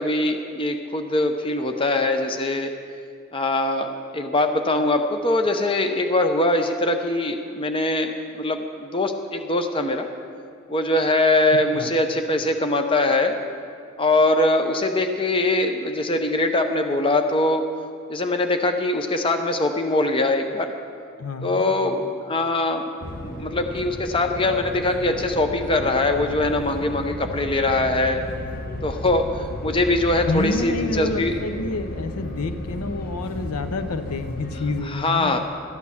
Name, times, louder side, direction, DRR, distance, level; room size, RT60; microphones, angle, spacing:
voice 1, 0.0-2.7 3.3-10.1 10.7-13.4 14.0-17.6 18.1-20.7 21.4-22.8 23.2-28.2 28.8-31.4 34.9-35.4, left 2 dB, 25° left, 6 dB, 0.7 m, -22 dB
voice 2, 11.5-11.9 21.2-21.7 30.2-35.4, left 2 dB, 85° left, 10 dB, 0.7 m, -28 dB
sound 1, 23.0-34.8, equal, 40° left, 1.1 m, -34 dB
13.5 x 8.7 x 7.0 m, 2.4 s
head